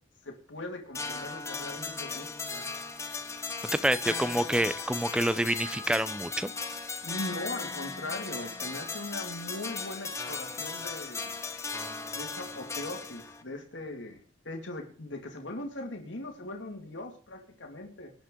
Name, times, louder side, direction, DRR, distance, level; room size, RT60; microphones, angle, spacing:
voice 1, 0.2-2.7 7.0-11.4 12.1-18.1, left 2 dB, 80° left, 3 dB, 2.2 m, -40 dB
sound 1, 0.9-13.4, left 4 dB, 15° left, 1.2 m, -37 dB
voice 2, 3.6-6.5, right 1 dB, 5° right, 15 dB, 0.6 m, -28 dB
18.5 x 9.3 x 3.8 m, 0.43 s
head